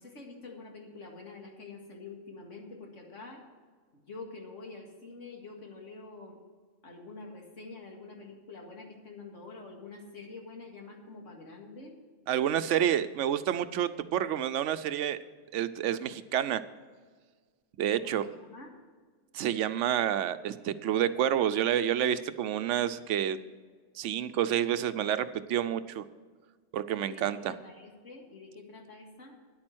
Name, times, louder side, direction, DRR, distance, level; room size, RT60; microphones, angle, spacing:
voice 1, 0.0-3.4 3.9-6.4 6.8-11.9 18.0-18.8 27.0-29.4, left 3 dB, 75° left, 0 dB, 2.3 m, -47 dB
voice 2, 12.3-15.2 15.5-16.6 17.8-18.3 19.3-23.4 24.0-26.1 26.7-27.5, right 10 dB, 75° right, 13 dB, 0.9 m, -29 dB
10.5 x 8.6 x 6.1 m, 1.5 s
omnidirectional pair, 1.3 m